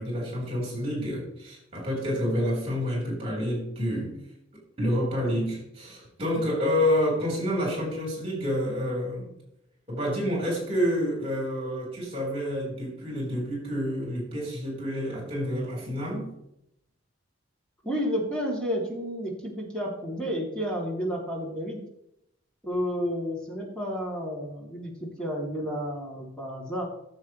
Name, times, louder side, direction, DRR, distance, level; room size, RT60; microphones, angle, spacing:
voice 1, 0.0-4.2 4.8-9.3 9.9-16.3, equal, 30° right, -2 dB, 3.9 m, -28 dB
voice 2, 17.8-21.8 22.6-26.8, equal, 5° left, -3 dB, 2.7 m, -31 dB
15.0 x 7.5 x 3.1 m, 0.79 s
head